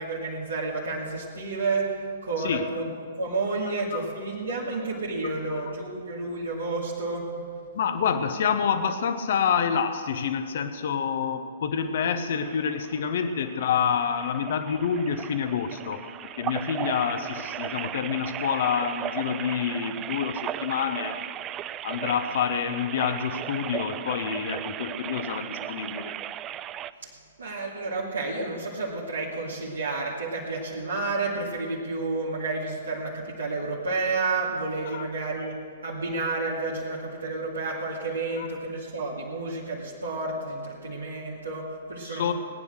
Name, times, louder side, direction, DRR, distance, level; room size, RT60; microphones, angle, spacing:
voice 1, 0.0-2.9 3.2-7.4 7.9-8.0 27.0-42.3, right 3 dB, 70° right, -5 dB, 2.2 m, -31 dB
voice 2, 2.4-2.8 3.9-4.0 5.5-5.6 7.7-16.0 16.4-21.2 21.8-26.1 34.8-35.1 38.4-38.5 42.0-42.3, left 7 dB, 50° left, 9 dB, 1.1 m, -27 dB
sound 1, 12.4-26.9, right 11 dB, 25° right, 0.3 m, -36 dB
19.0 x 9.9 x 6.4 m, 2.3 s
figure-of-eight pair, 115°, 0 cm